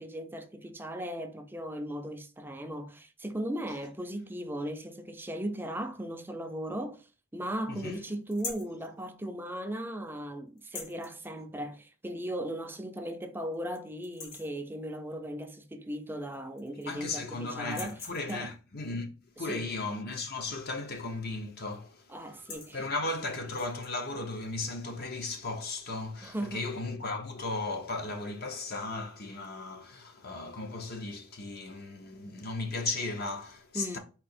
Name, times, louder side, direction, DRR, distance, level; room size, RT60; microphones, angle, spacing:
voice 1, 0.0-7.1 7.3-18.0 18.3-18.5 19.4-19.7 22.1-22.9 26.2-26.7 33.7-34.0, right 1 dB, 10° right, 0.5 m, -37 dB
voice 2, 7.7-8.0 16.9-19.1 19.4-34.0, left 3 dB, 50° left, 0.9 m, -36 dB
sound 1, 8.3-8.8 10.6-11.1 12.5-12.6 13.0-13.1 13.5-13.8 14.0-14.6 16.0-16.1 16.3-17.0 17.6-18.5 20.9-21.2 21.5-21.8 22.2-22.8 23.5-23.9, left 4 dB, 75° left, 1.2 m, -43 dB
4.2 x 2.9 x 4.2 m
head